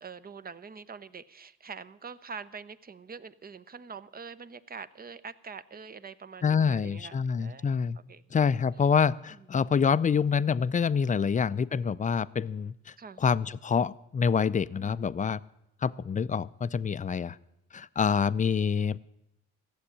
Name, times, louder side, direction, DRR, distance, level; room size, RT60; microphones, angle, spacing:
voice 1, 0.0-7.6 8.1-8.2 13.0-13.2 14.8-15.1, right 5 dB, 30° right, 15 dB, 0.7 m, -44 dB
voice 2, 6.4-8.0 8.3-15.4 15.8-17.4 17.7-19.0, left 6 dB, 25° left, 16 dB, 0.4 m, -26 dB
15.0 x 7.2 x 9.9 m, 0.86 s
cardioid pair, 90°, 30 cm